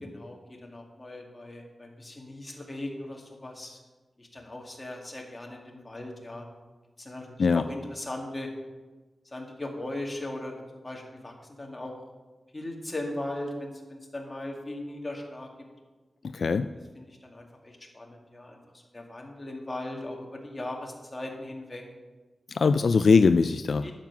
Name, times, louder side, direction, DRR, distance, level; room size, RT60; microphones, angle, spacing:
voice 1, 0.0-3.8 4.2-6.5 7.0-8.5 9.3-11.9 12.5-15.5 17.0-18.6 18.9-21.8 23.8-23.9, left 1 dB, 20° left, 0 dB, 2.2 m, -38 dB
voice 2, 16.2-16.7 22.5-23.9, left 4 dB, 70° left, 11 dB, 0.3 m, -21 dB
11.5 x 7.6 x 6.1 m, 1.2 s
wide cardioid pair, 110°, 0 cm